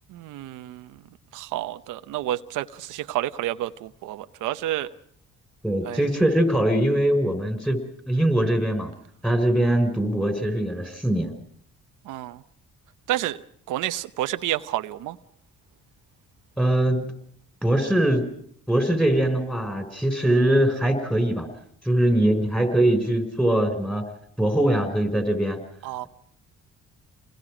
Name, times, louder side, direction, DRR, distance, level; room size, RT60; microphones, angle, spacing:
voice 1, 0.1-0.9 1.3-4.9 5.8-6.0 12.1-12.4 13.1-13.4 13.7-15.2 25.8-26.1, right 14 dB, 90° right, 0.8 m, -29 dB
voice 2, 5.6-7.8 8.1-8.9 9.2-11.3 16.6-17.1 17.6-18.2 18.7-21.5 21.8-24.0 24.4-25.6, right 1 dB, 5° left, 5.3 m, -22 dB
29.0 x 21.0 x 5.0 m
cardioid pair, 90°, 30 cm